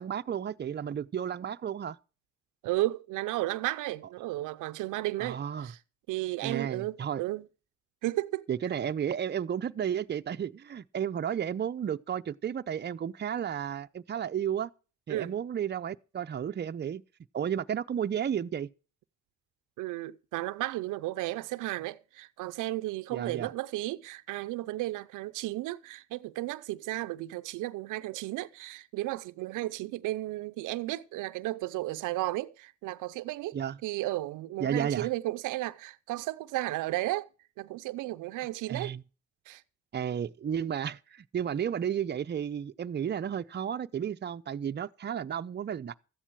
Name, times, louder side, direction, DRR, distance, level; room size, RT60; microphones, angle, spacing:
voice 1, 0.0-2.0 5.2-5.7 6.4-7.2 8.5-14.7 15.1-17.0 17.3-18.7 23.1-23.5 33.5-33.8 34.6-35.1 38.4-39.0 39.9-45.9, right 8 dB, 35° right, 0.7 m, -33 dB
voice 2, 2.6-5.8 6.1-7.5 8.0-8.5 15.1-15.3 19.8-37.3 37.6-38.9 39.5-39.6, right 17 dB, 90° right, 0.6 m, -34 dB
14.0 x 10.0 x 4.6 m
cardioid pair, 90°, 30 cm